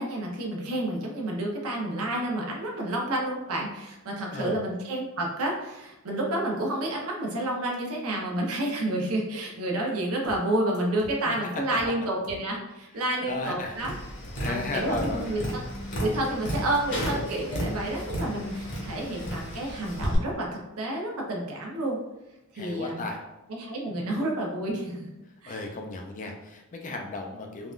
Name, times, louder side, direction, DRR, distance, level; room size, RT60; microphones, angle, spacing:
voice 1, 0.0-13.9 14.5-15.6 16.0-22.0 22.5-23.1 23.5-25.0 25.4-25.7, right 1 dB, 70° right, -1 dB, 0.7 m, -30 dB
sound 1, 10.2-10.5 10.7-11.2 11.7-12.0 12.2-12.5 14.2-14.5 14.7-15.2 15.7-16.0 16.2-16.5 16.7-16.8, equal, 80° left, 0.6 m, -47 dB
voice 2, 11.2-11.6 13.2-13.8 14.4-15.4 22.5-23.2 23.9-24.1 25.5-27.7, left 3 dB, 35° left, 2 dB, 0.4 m, -34 dB
Tap, 13.8-20.2, equal, 55° left, 1.0 m, -33 dB
3.5 x 2.2 x 2.4 m, 0.96 s
head